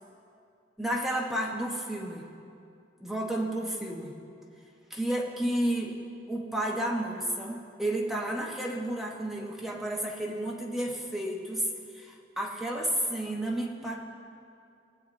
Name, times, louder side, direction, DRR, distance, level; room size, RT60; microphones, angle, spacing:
voice 1, 0.8-2.2 3.0-4.1 4.9-6.0 6.3-11.7 11.9-14.0, right 1 dB, ahead, -2 dB, 1.1 m, -31 dB
21.5 x 8.0 x 2.7 m, 2.5 s
head